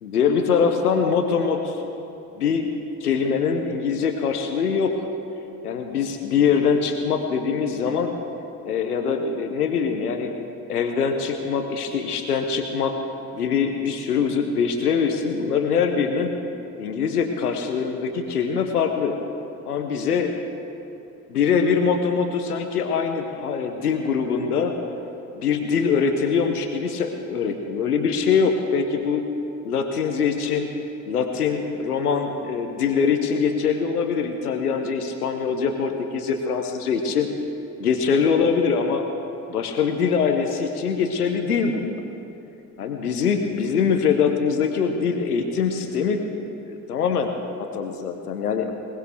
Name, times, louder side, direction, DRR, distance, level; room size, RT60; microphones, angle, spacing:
voice 1, 0.0-1.8 2.4-2.7 3.0-5.1 5.6-8.1 8.6-10.3 10.7-13.0 13.3-16.3 16.8-19.2 19.7-20.3 21.3-24.7 25.3-29.2 29.6-30.7 31.1-37.3 37.8-39.0 39.5-41.9 42.8-46.2 46.7-47.3 47.7-48.7, left 6 dB, 85° left, 5 dB, 1.0 m, -23 dB
21.0 x 19.5 x 3.4 m, 2.8 s
figure-of-eight pair, 50°, 45 cm